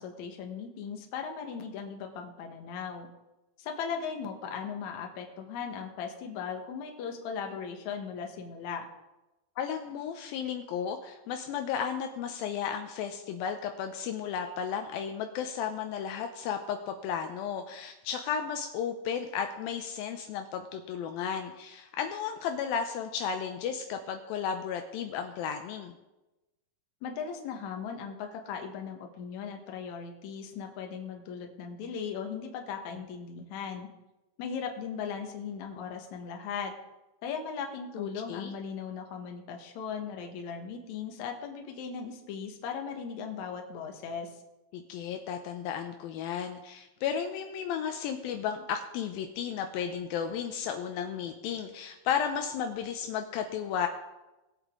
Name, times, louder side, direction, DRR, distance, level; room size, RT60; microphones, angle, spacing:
voice 1, 0.0-3.1 3.6-8.9 27.0-33.9 34.4-36.7 37.2-44.3, left 6 dB, 65° left, 3 dB, 2.0 m, -38 dB
voice 2, 9.6-25.9 38.0-38.5 44.7-53.9, left 7 dB, 85° left, 6 dB, 2.1 m, -34 dB
19.5 x 8.1 x 3.7 m, 1.0 s
omnidirectional pair, 5.0 m